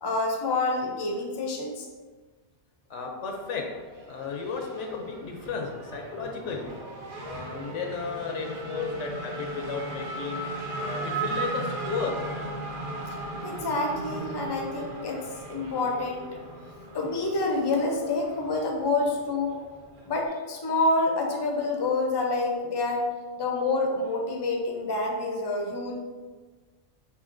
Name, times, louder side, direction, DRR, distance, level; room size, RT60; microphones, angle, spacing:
voice 1, 0.0-1.9 13.4-15.2 15.5-16.4 16.9-19.5 20.0-23.1 23.4-26.0, left 2 dB, 30° left, 1 dB, 0.5 m, -27 dB
voice 2, 2.9-3.6 4.0-6.7 7.2-10.4 10.8-12.2, left 5 dB, 80° left, 2 dB, 0.9 m, -34 dB
Race car auto racing / Accelerating revving vroom, 3.3-20.3, right 2 dB, 50° right, 0.8 m, -37 dB
6.8 x 2.6 x 2.5 m, 1.4 s
omnidirectional pair, 1.2 m